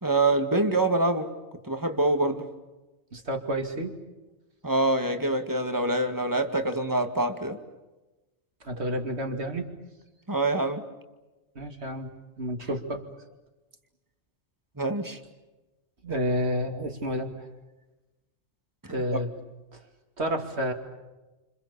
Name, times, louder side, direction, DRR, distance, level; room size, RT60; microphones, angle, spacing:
voice 1, 0.0-1.3 1.6-2.4 4.6-7.6 10.3-10.8 14.8-15.2 18.8-18.9, right 2 dB, 15° right, 6 dB, 2.1 m, -25 dB
voice 2, 3.1-3.9 8.6-9.7 11.5-12.1 12.4-13.0 16.0-17.5 18.9-19.3 19.7-19.8 20.2-20.7, equal, 65° right, 4 dB, 2.9 m, -30 dB
29.0 x 27.0 x 7.0 m, 1.1 s
omnidirectional pair, 1.2 m